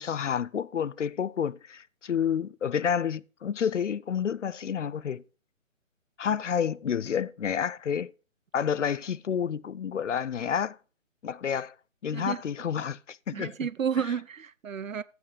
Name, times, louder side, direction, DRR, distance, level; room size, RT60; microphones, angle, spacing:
voice 1, 0.0-5.2 6.2-8.1 8.5-10.8 11.2-11.7 12.0-13.5, left 8 dB, 65° left, 0.6 m, -29 dB
voice 2, 13.3-15.0, right 7 dB, 75° right, 0.8 m, -31 dB
15.0 x 6.3 x 5.0 m
figure-of-eight pair, 150°, 40 cm